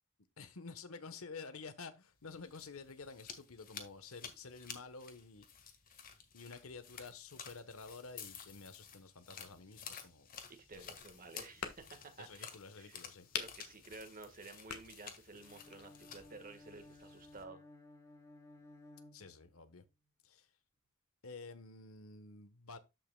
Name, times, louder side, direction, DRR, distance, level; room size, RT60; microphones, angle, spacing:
voice 1, 0.4-5.5 6.3-10.3 10.7-10.9 12.2-13.3 19.1-19.8 20.2-20.5 21.2-22.8, left 4 dB, 65° left, 1.1 m, -50 dB
sound 1, 2.2-17.4, left 7 dB, 40° left, 1.6 m, -53 dB
voice 2, 10.5-12.5 12.8-13.0 13.3-17.6, right 3 dB, 40° right, 1.5 m, -53 dB
sound 2, 10.7-16.0, left 7 dB, 85° left, 1.5 m, -48 dB
Bowed string instrument, 15.3-19.9, left 2 dB, 15° left, 2.4 m, -58 dB
13.5 x 5.7 x 2.2 m
head